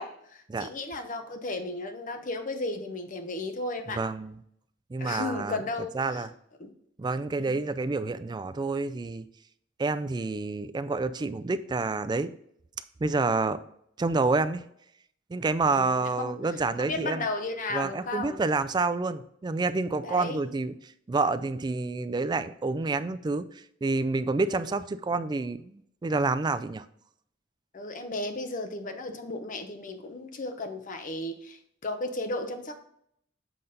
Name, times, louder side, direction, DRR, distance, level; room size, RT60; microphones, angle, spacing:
voice 1, 0.0-4.0 5.0-6.3 6.6-6.7 7.4-7.6 15.6-16.4 16.8-18.4 20.0-20.4 24.5-24.6 27.7-32.7, left 2 dB, 40° left, 7 dB, 0.8 m, -34 dB
voice 2, 3.9-4.4 4.9-5.6 5.9-6.3 7.0-9.3 9.8-12.3 13.0-13.6 14.0-14.7 15.3-17.3 17.7-26.9, right 3 dB, 20° right, 12 dB, 0.3 m, -28 dB
7.6 x 4.0 x 3.8 m, 0.70 s
head